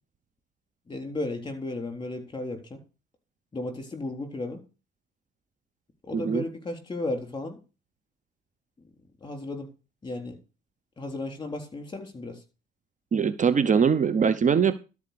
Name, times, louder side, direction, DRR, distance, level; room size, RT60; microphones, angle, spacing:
voice 1, 0.9-2.8 3.5-4.6 6.0-7.6 9.2-9.7 10.0-10.4 11.0-12.4, left 2 dB, 25° left, 4 dB, 3.5 m, -34 dB
voice 2, 6.1-6.4 13.1-14.8, right 6 dB, 40° right, 13 dB, 0.7 m, -22 dB
12.5 x 4.8 x 6.8 m, 0.32 s
cardioid pair, 90°, 20 cm